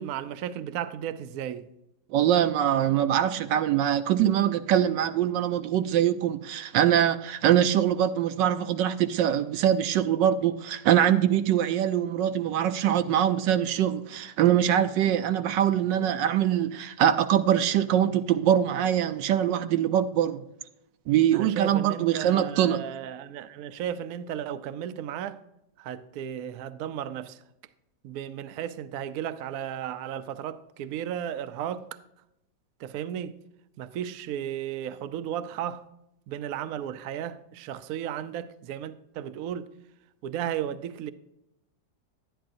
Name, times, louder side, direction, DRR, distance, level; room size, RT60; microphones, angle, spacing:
voice 1, 0.0-1.7 21.3-25.4 25.8-27.4 28.0-31.9 32.8-33.4 33.8-35.8 36.3-39.7 40.2-41.1, right 10 dB, 70° right, 0.9 m, -34 dB
voice 2, 2.1-20.4 21.1-22.8, right 10 dB, 85° right, 1.3 m, -23 dB
11.0 x 10.0 x 2.6 m
omnidirectional pair, 1.9 m